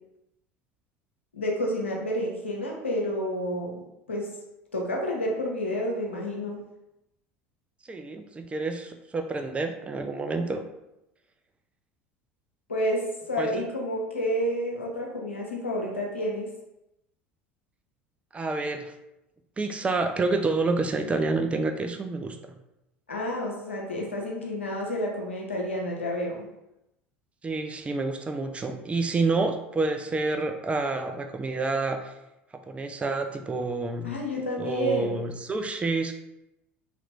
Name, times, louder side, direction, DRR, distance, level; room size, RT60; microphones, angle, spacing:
voice 1, 1.3-4.3 4.7-6.6 12.7-16.5 23.1-26.5 34.0-35.2, equal, 90° left, -1 dB, 0.6 m, -30 dB
voice 2, 7.9-10.6 13.4-13.5 18.3-18.9 19.6-22.4 27.4-32.1 32.7-34.1 34.6-36.1, right 3 dB, 20° right, 6 dB, 0.4 m, -28 dB
3.0 x 2.5 x 3.2 m, 0.89 s
hypercardioid pair, 70°, 6 cm